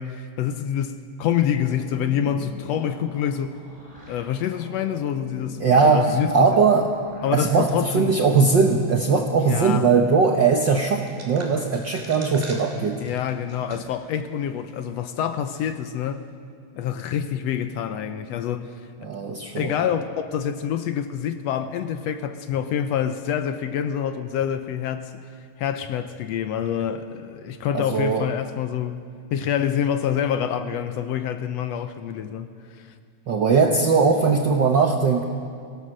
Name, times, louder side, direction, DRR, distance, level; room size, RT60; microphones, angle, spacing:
voice 1, 0.0-3.6 4.1-6.5 7.2-8.2 9.4-9.9 12.9-16.2 16.8-18.7 19.5-25.2 25.6-29.0 29.3-32.9, left 9 dB, 75° left, 1.7 m, -26 dB
sound 1, 1.3-7.6, left 1 dB, 5° left, 7.0 m, -43 dB
voice 2, 5.6-6.9 7.3-13.0 19.0-19.7 27.7-28.3 33.3-35.2, right 5 dB, 65° right, 1.1 m, -20 dB
sound 2, 11.1-14.0 14.5-14.6 15.4-15.7, right 2 dB, 20° right, 2.9 m, -43 dB
25.0 x 17.0 x 6.4 m
omnidirectional pair, 3.3 m